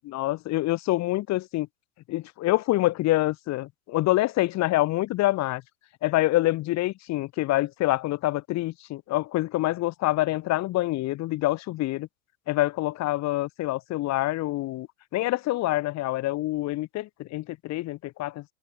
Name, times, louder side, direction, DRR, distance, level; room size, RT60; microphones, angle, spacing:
voice 1, 0.1-1.7 2.1-5.6 6.0-12.1 12.5-14.9 15.1-18.4, left 17 dB, 35° left, 1.2 m, -26 dB
hypercardioid pair, 90°, 47 cm